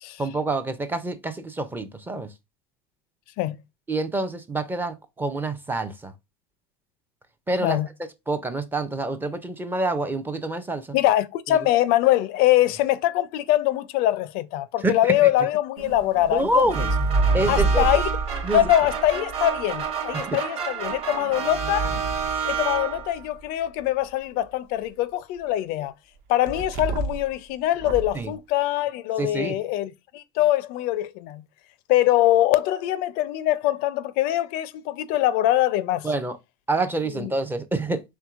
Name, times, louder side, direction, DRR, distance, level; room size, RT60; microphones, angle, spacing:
voice 1, 0.2-2.3 3.9-6.1 7.5-7.8 8.3-11.0 11.5-11.7 14.8-15.3 16.3-16.9 17.3-17.9 18.4-18.7 20.1-20.4 28.1-28.3 29.2-29.6 36.0-36.4 36.7-38.0, right 2 dB, 10° right, 0.4 m, -27 dB
voice 2, 10.9-16.6 17.5-18.1 18.5-21.9 22.4-25.9 26.3-31.4 31.9-36.1 37.2-37.3, left 14 dB, 55° left, 0.4 m, -23 dB
sound 1, 15.8-19.9 20.8-23.2 26.5-27.3 27.7-28.2, right 3 dB, 50° right, 0.7 m, -28 dB
sound 2, 16.7-23.2, right 7 dB, 30° right, 1.0 m, -30 dB
4.5 x 3.7 x 2.4 m
supercardioid pair, 140°, 19 cm